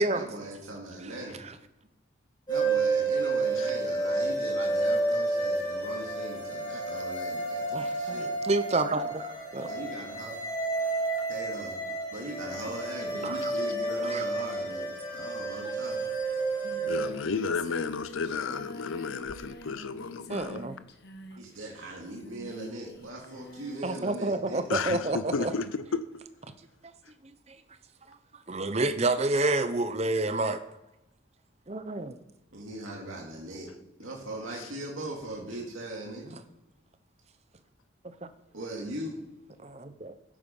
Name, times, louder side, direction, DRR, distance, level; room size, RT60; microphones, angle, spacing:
voice 1, 0.0-1.4 2.5-8.3 9.7-10.3 11.3-11.8 12.1-16.0 21.4-24.6 32.5-33.7 34.0-36.4 38.5-39.2, right 1 dB, 85° right, 2.5 m, -39 dB
sound 1, 2.5-17.0, right 2 dB, 20° left, 4.7 m, -30 dB
voice 2, 7.7-9.7 13.2-13.5 14.0-14.3 20.3-20.7 23.8-25.5 28.5-30.6 31.7-32.1 38.2-38.3 39.6-40.1, right 2 dB, 30° right, 0.7 m, -29 dB
Singing, 16.2-23.9, left 1 dB, 55° left, 1.3 m, -46 dB
voice 3, 16.9-20.6 24.7-26.1, left 5 dB, 85° left, 0.6 m, -32 dB
15.0 x 8.7 x 5.4 m
head